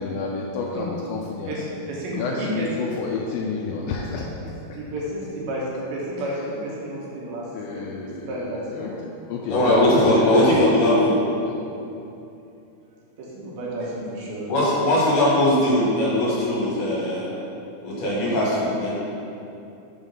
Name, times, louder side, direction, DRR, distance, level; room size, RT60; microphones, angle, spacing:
voice 1, 0.0-1.6 2.1-4.8 7.5-8.9 9.3-10.6 11.5-11.6, left 4 dB, 85° left, -1 dB, 2.1 m, -30 dB
voice 2, 1.5-2.7 4.7-7.7 8.0-8.9 13.2-14.7, right 1 dB, 80° right, -5 dB, 3.0 m, -31 dB
voice 3, 9.5-11.2 14.5-17.3 17.8-18.9, left 1 dB, 65° left, -7 dB, 2.5 m, -20 dB
7.0 x 3.8 x 5.2 m, 2.7 s
omnidirectional pair, 4.4 m